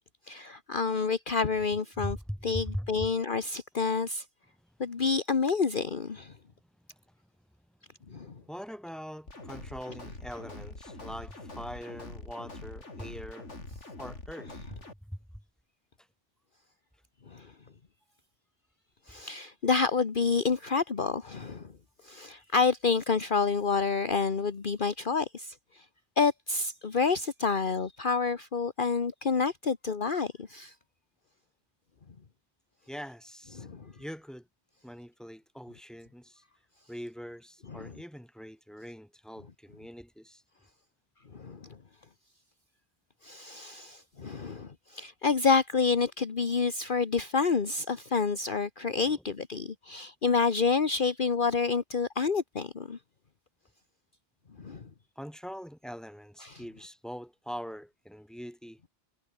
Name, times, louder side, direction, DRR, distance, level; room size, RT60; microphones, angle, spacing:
voice 1, 0.3-2.2 2.4-4.2 4.8-6.3 8.1-8.3 17.3-17.5 19.1-21.7 22.0-25.8 26.2-30.7 33.6-33.9 37.7-37.9 41.3-41.6 43.2-53.0 54.6-54.8 56.4-56.6, left 5 dB, 45° left, 1.4 m, -28 dB
voice 2, 2.0-3.1 8.5-13.5 14.0-14.8 15.1-15.2 32.9-33.7 34.0-34.5 34.8-36.4 36.9-40.4 49.0-49.2 55.2-58.8, equal, ahead, 6.6 m, -42 dB
sound 1, 9.3-14.9, left 2 dB, 80° left, 4.5 m, -44 dB
omnidirectional pair, 1.2 m